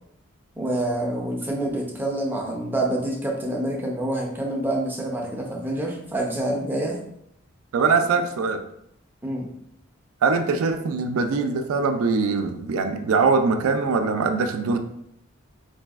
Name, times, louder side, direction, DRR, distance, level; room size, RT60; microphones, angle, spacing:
voice 1, 0.6-7.0 9.2-9.5, right 1 dB, 10° right, -1 dB, 0.4 m, -27 dB
voice 2, 7.7-8.6 10.2-14.8, right 4 dB, 80° right, 7 dB, 0.3 m, -22 dB
3.9 x 2.6 x 2.3 m, 0.76 s
head